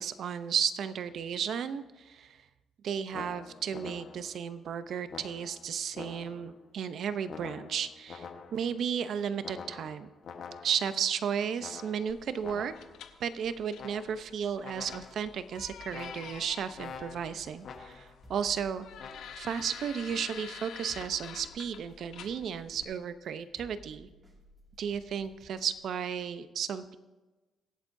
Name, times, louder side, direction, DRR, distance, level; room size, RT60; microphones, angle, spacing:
voice 1, 0.0-2.4 2.8-10.1 10.6-12.7 13.2-18.9 19.3-24.1 24.8-26.9, right 7 dB, 65° right, 12 dB, 0.7 m, -34 dB
sound 1, 3.1-4.4 5.1-6.6 7.3-8.8 9.4-11.0 11.6-13.0 13.8-14.4 14.6-15.3 15.9-18.2 19.0-19.3, left 6 dB, 60° left, 1.2 m, -46 dB
sound 2, 12.1-22.8, left 8 dB, 75° left, 0.9 m, -49 dB
sound 3, 15.6-26.2, equal, 15° right, 2.3 m, -57 dB
23.5 x 8.3 x 2.7 m, 1.2 s
cardioid pair, 90°, 0 cm